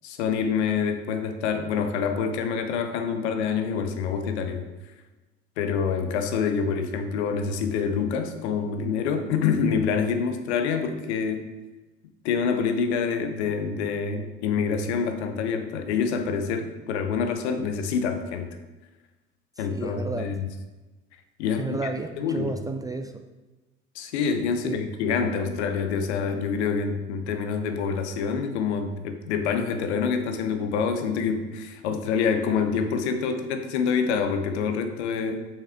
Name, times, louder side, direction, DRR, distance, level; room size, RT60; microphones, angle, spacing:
voice 1, 0.0-4.6 5.6-11.5 12.2-18.5 19.6-20.5 21.4-21.8 22.2-22.6 23.9-35.5, left 6 dB, 70° left, 7 dB, 0.9 m, -26 dB
voice 2, 19.6-20.2 21.6-23.2 24.6-24.8, right 3 dB, 10° right, 6 dB, 0.3 m, -32 dB
6.8 x 5.9 x 3.5 m, 1.2 s
figure-of-eight pair, 65°, 35 cm